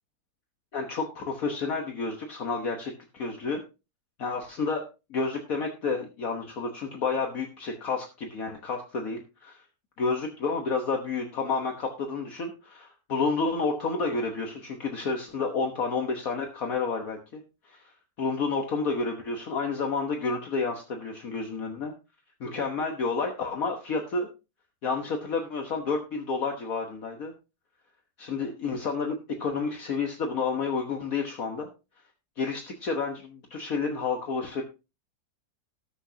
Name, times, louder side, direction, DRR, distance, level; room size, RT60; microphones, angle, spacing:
voice 1, 0.7-3.6 4.2-4.8 5.1-9.6 10.0-17.9 18.2-21.9 22.4-24.3 24.8-27.3 28.2-31.7 32.4-34.6, left 4 dB, 60° left, 3 dB, 1.6 m, -30 dB
19.0 x 6.4 x 2.8 m, 0.28 s
omnidirectional pair, 1.8 m